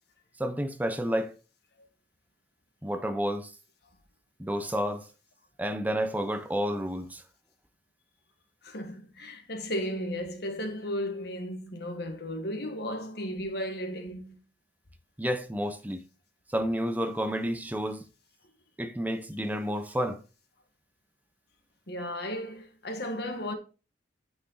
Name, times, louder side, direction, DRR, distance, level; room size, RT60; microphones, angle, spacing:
voice 1, 0.4-1.3 2.8-3.5 4.4-5.1 5.6-7.2 15.2-16.0 16.5-18.0 18.8-20.2, equal, 10° right, 0.8 m, -30 dB
voice 2, 8.6-14.4 21.9-23.5, equal, 65° left, 1.8 m, -35 dB
8.9 x 6.0 x 4.0 m
head